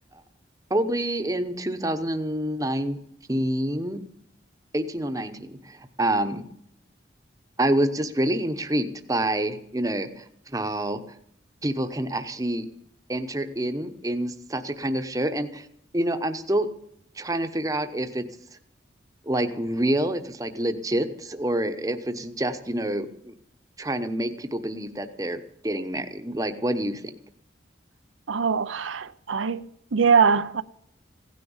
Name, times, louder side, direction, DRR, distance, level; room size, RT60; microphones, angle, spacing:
voice 1, 0.7-3.0 3.3-4.0 4.7-6.4 7.6-10.2 10.5-11.0 11.6-12.6 13.1-15.7 15.9-16.7 17.2-18.2 19.3-23.3 23.8-27.0, right 1 dB, 20° right, 0.9 m, -27 dB
voice 2, 28.3-29.6 29.9-30.6, right 6 dB, 80° right, 0.6 m, -22 dB
16.5 x 10.0 x 7.2 m
head